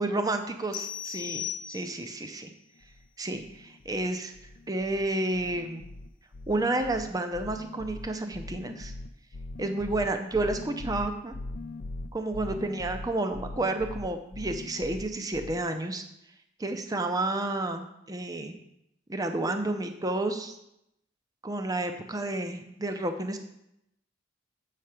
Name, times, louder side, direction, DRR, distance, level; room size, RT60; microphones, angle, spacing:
voice 1, 0.0-2.5 3.2-4.3 4.7-5.8 6.5-8.9 9.6-11.4 12.1-16.0 16.6-18.5 19.1-20.6 21.4-23.4, right 2 dB, 20° right, 7 dB, 0.6 m, -30 dB
sound 1, 0.7-2.3, left 10 dB, 90° left, 0.7 m, -37 dB
sound 2, 2.8-3.1 3.3-4.1 4.3-5.1 5.3-15.6, left 2 dB, 50° left, 0.4 m, -41 dB
7.8 x 4.9 x 5.8 m, 0.82 s
head